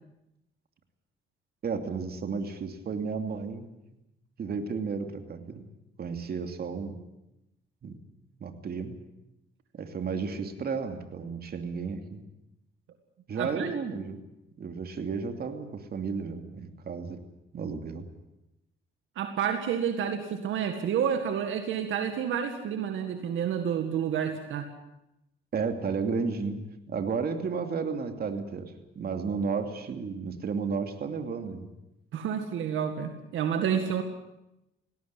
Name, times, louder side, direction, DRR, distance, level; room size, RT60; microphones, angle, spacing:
voice 1, 1.6-3.7 4.4-5.7 6.0-7.0 7.8-8.0 8.4-8.9 9.7-12.2 13.3-14.2 14.6-17.2 17.5-18.0 25.5-31.7, right 5 dB, 50° right, 6 dB, 2.8 m, -33 dB
voice 2, 13.4-13.7 19.2-24.7 32.1-34.0, right 8 dB, 80° right, 7 dB, 1.9 m, -29 dB
19.0 x 17.0 x 9.8 m, 0.91 s
cardioid pair, 90°, 20 cm